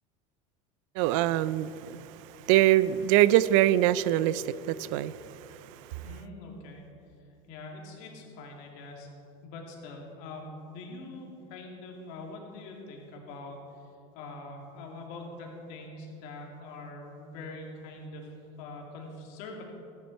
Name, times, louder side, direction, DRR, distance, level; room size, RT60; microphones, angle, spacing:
voice 1, 1.0-5.4, right 14 dB, 70° right, 17 dB, 0.4 m, -24 dB
voice 2, 6.0-6.9 7.5-9.1 9.4-13.6 14.1-19.6, left 2 dB, 65° left, 0 dB, 2.4 m, -43 dB
14.0 x 9.5 x 4.5 m, 2.8 s
supercardioid pair, 140°, 17 cm